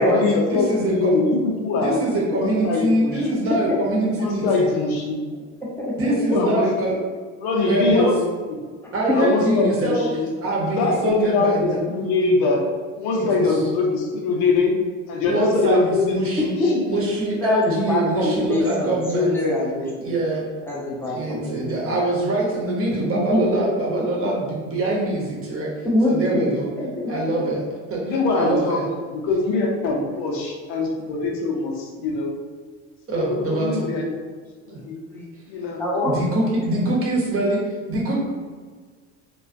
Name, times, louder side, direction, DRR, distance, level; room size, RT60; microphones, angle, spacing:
voice 1, 0.0-2.0 2.3-3.4 4.2-5.3 6.1-6.7 7.4-8.1 8.4-8.6 9.1-10.2 10.6-12.6 13.0-14.7 15.1-16.8 21.1-21.2 28.0-32.3 33.1-34.2 34.6-35.0 35.5-35.9, left 3 dB, 65° left, -1 dB, 0.7 m, -23 dB
voice 2, 0.5-1.2 1.8-4.7 6.0-7.0 7.6-8.1 8.9-10.0 10.4-11.8 13.1-13.4 15.3-16.5 16.9-19.3 20.0-20.4 21.1-25.7 26.1-26.7 27.1-27.6 27.9-28.9 33.1-33.9 34.7-34.8 36.0-38.2, right 2 dB, 35° right, -3 dB, 0.9 m, -24 dB
voice 3, 5.6-6.4 9.1-9.2 16.6-16.8 17.4-20.1 20.7-22.0 23.1-23.4 24.2-24.3 25.8-27.1 27.4-27.5 35.1-35.3 35.8-36.1, left 1 dB, 5° left, -5 dB, 0.8 m, -24 dB
2.3 x 2.3 x 2.5 m, 1.5 s
hypercardioid pair, 80°, 38 cm